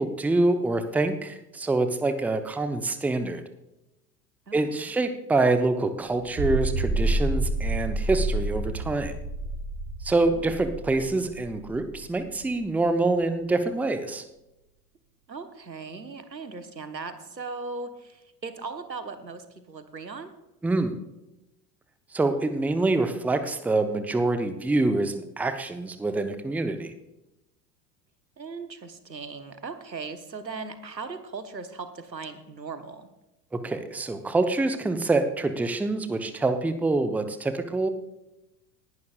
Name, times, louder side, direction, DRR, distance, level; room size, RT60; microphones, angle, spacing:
voice 1, 0.0-3.4 4.5-9.1 10.0-14.2 20.6-20.9 22.1-26.9 33.5-37.9, right 2 dB, 5° right, 9 dB, 0.6 m, -26 dB
voice 2, 4.5-4.9 10.3-10.6 15.3-20.3 28.4-33.1, right 4 dB, 85° right, 10 dB, 1.1 m, -38 dB
sound 1, 6.3-12.7, right 2 dB, 45° right, 3.8 m, -29 dB
19.0 x 11.0 x 2.3 m, 0.93 s
figure-of-eight pair, 80°, 50 cm